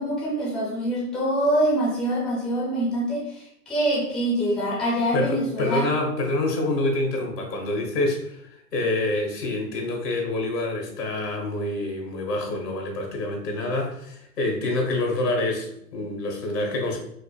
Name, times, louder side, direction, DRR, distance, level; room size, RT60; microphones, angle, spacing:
voice 1, 0.0-5.9, right 1 dB, ahead, -5 dB, 0.6 m, -25 dB
voice 2, 5.1-17.0, left 2 dB, 80° left, 2 dB, 1.3 m, -27 dB
4.9 x 2.1 x 2.3 m, 0.75 s
hypercardioid pair, 115°, 48 cm